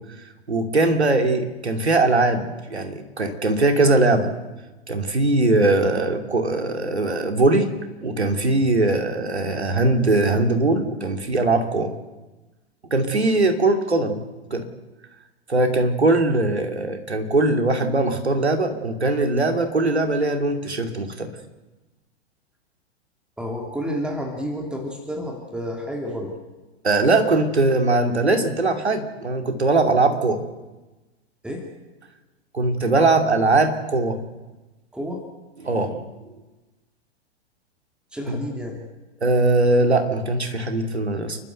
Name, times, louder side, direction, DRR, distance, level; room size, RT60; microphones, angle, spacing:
voice 1, 0.5-4.3 4.9-7.7 8.0-11.9 12.9-14.2 14.5-14.7 15.5-21.3 26.8-30.4 32.5-34.2 35.6-36.0 38.3-38.4 39.2-41.4, right 2 dB, 80° right, 5 dB, 2.6 m, -20 dB
voice 2, 23.4-26.4 31.4-31.7 34.9-35.2 38.1-38.8, equal, 5° right, 2 dB, 2.6 m, -30 dB
29.5 x 12.0 x 8.0 m, 1.1 s
figure-of-eight pair, 100°, 33 cm